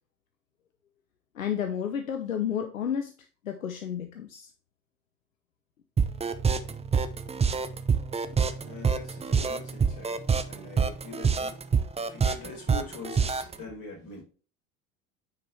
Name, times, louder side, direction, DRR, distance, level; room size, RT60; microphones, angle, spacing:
voice 1, 1.3-3.1 3.4-4.5, left 8 dB, 90° left, 7 dB, 0.7 m, -31 dB
sound 1, 6.0-13.5, right 5 dB, 15° right, 0.7 m, -26 dB
voice 2, 8.2-14.2, left 2 dB, 55° left, 1 dB, 4.3 m, -43 dB
9.3 x 4.9 x 3.1 m, 0.36 s
figure-of-eight pair, 70°, 39 cm